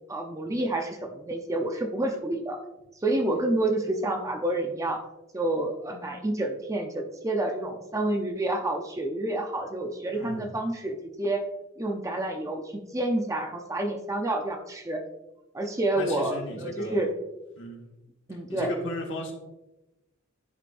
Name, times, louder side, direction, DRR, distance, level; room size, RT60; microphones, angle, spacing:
voice 1, 0.1-2.6 3.0-5.0 5.3-11.5 11.8-15.0 15.5-17.1 18.3-18.7, right 1 dB, 15° right, 4 dB, 0.6 m, -29 dB
voice 2, 10.1-10.5 16.0-17.0 17.6-17.8 18.5-19.3, left 1 dB, 60° left, 0 dB, 1.6 m, -35 dB
11.0 x 5.1 x 2.5 m, 0.97 s
head